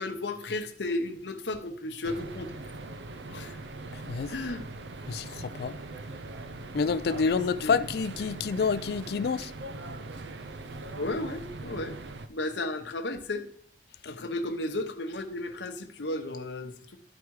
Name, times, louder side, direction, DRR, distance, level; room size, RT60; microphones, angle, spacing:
voice 1, 0.0-2.5 3.3-3.6 4.3-4.7 7.2-7.4 7.6-7.9 10.9-12.0 12.3-13.4 14.1-17.0, left 2 dB, 90° left, 0.9 m, -34 dB
sound 1, 2.0-12.3, right 2 dB, 80° right, 0.6 m, -41 dB
voice 2, 5.1-5.7 6.7-9.5, left 5 dB, 60° left, 0.4 m, -28 dB
12.5 x 4.8 x 4.7 m
head